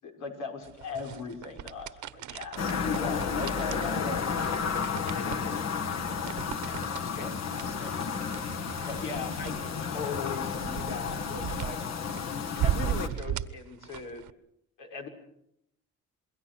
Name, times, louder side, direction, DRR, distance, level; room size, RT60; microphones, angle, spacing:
voice 1, 0.0-4.5 5.1-5.6 5.9-11.8 12.6-14.2 14.8-15.1, left 4 dB, 90° left, 2 dB, 5.8 m, -40 dB
sound 1, 0.6-14.3, right 11 dB, 75° right, 1.2 m, -38 dB
sound 2, 2.6-13.1, left 6 dB, 60° left, 2.1 m, -32 dB
27.0 x 22.0 x 6.2 m, 0.77 s
cardioid pair, 90°, 30 cm